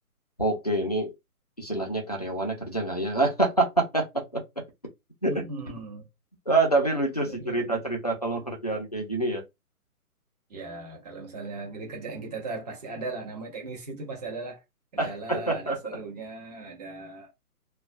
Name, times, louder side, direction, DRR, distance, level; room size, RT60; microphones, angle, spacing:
voice 1, 0.4-1.1 1.6-4.4 5.2-5.3 6.5-9.4 15.0-16.0, right 2 dB, 30° left, 0.4 m, -26 dB
voice 2, 5.3-6.0 7.2-7.8 10.5-14.6 14.9-17.3, right 3 dB, 25° right, 0.8 m, -38 dB
2.3 x 2.2 x 2.5 m
figure-of-eight pair, 145°, 44 cm